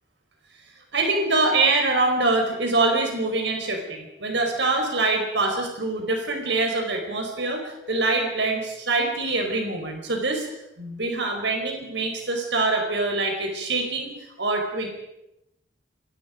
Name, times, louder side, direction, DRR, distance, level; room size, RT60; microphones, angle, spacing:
voice 1, 0.9-10.5 10.8-14.1 14.4-14.9, right 2 dB, 75° right, 3 dB, 4.8 m, -24 dB
27.0 x 22.0 x 5.2 m, 0.86 s
head